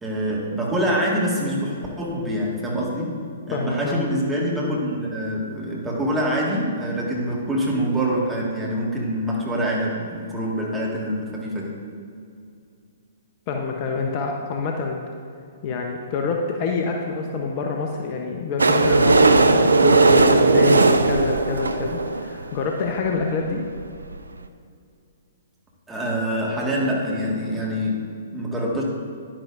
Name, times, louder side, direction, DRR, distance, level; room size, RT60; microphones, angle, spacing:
voice 1, 0.0-3.2 3.5-11.8 25.9-28.8, equal, 10° right, -4 dB, 1.9 m, -25 dB
voice 2, 3.5-4.0 13.5-15.0 15.6-23.6, left 4 dB, 35° left, 2 dB, 0.9 m, -26 dB
sound 1, 18.6-22.5 23.1-23.2 23.4-23.5 23.7-23.8 24.1-24.2, right 3 dB, 80° right, 0.5 m, -17 dB
10.5 x 10.0 x 2.6 m, 2.4 s
figure-of-eight pair, 120°, 0 cm